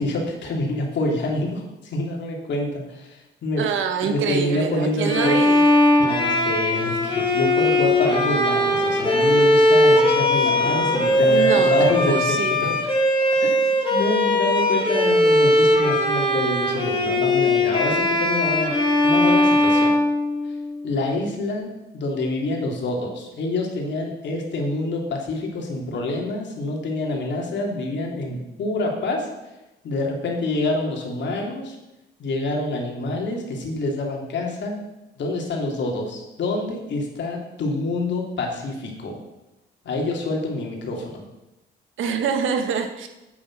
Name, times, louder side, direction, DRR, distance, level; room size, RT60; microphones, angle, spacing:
voice 1, 0.0-3.6 4.0-5.4 6.0-12.7 13.4-13.6 13.9-18.7 19.0-19.9 20.8-29.3 29.8-31.8 32.2-34.8 35.2-39.1 39.8-41.2, left 2 dB, 65° left, 0 dB, 3.1 m, -26 dB
voice 2, 3.6-5.8 11.3-12.7 42.0-43.1, right 6 dB, 80° right, 6 dB, 1.5 m, -25 dB
Bowed string instrument, 5.1-20.8, left 1 dB, 25° left, 2.7 m, -19 dB
sound 1, 6.9-9.8 10.3-11.5, right 2 dB, 25° right, 3.1 m, -38 dB
9.1 x 9.0 x 6.2 m, 0.98 s
cardioid pair, 90°, 20 cm